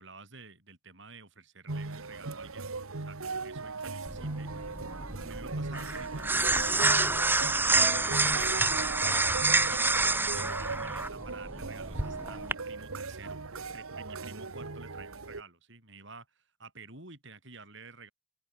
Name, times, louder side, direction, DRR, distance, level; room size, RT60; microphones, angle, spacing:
voice 1, 0.0-2.7 3.1-4.5 5.2-7.1 7.6-13.5 13.7-18.1, right 3 dB, 60° right, 7.8 m, -50 dB
sound 1, 1.7-15.4, right 3 dB, 85° right, 1.4 m, -38 dB
sound 2, 4.1-12.5, right 3 dB, 10° right, 1.2 m, -28 dB
head